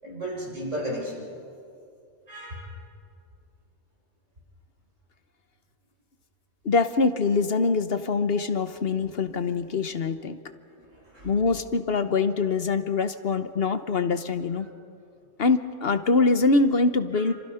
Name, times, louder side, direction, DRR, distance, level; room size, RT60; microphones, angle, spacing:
voice 1, 0.0-1.2 2.3-2.7 10.9-11.3 17.1-17.2, equal, 75° right, -3 dB, 6.7 m, -34 dB
voice 2, 6.6-10.4 11.2-14.7 15.4-17.3, left 4 dB, 55° left, 10 dB, 1.2 m, -24 dB
28.5 x 25.5 x 5.7 m, 2.5 s
omnidirectional pair, 1.3 m